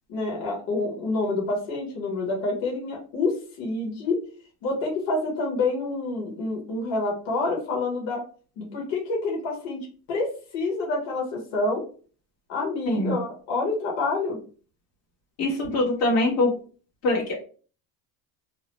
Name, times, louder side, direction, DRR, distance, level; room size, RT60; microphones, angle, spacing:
voice 1, 0.1-4.2 4.6-8.2 8.6-11.8 12.5-14.4, left 3 dB, 65° left, -2 dB, 1.2 m, -28 dB
voice 2, 15.4-16.5 17.0-17.4, left 2 dB, 85° left, -3 dB, 1.4 m, -23 dB
2.9 x 2.0 x 3.0 m, 0.39 s
supercardioid pair, 100°, 48 cm